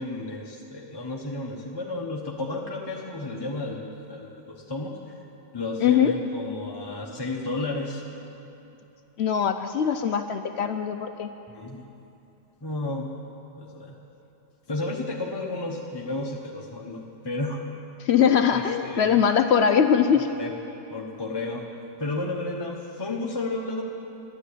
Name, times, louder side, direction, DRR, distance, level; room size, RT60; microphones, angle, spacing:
voice 1, 0.0-5.0 5.5-8.0 11.5-11.8 12.6-13.1 13.6-13.9 14.7-17.7 18.5-19.2 20.1-20.5 20.9-21.6 22.0-23.8, left 2 dB, 20° left, -2 dB, 0.8 m, -32 dB
voice 2, 5.8-6.1 9.2-11.3 18.0-20.3, left 7 dB, 75° left, 8 dB, 0.6 m, -21 dB
13.5 x 11.0 x 8.4 m, 2.9 s
omnidirectional pair, 1.7 m